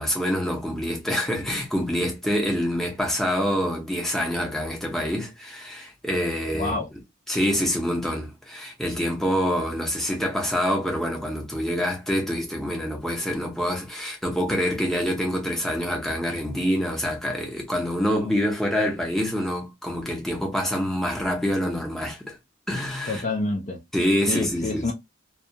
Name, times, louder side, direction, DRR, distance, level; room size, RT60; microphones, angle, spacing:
voice 1, 0.0-6.7 7.3-22.4 22.7-23.3 23.9-24.9, equal, ahead, 0.7 m, -26 dB
voice 2, 6.5-6.9 23.1-23.8 24.3-24.9, left 3 dB, 40° left, 0.4 m, -27 dB
2.3 x 2.2 x 2.7 m
head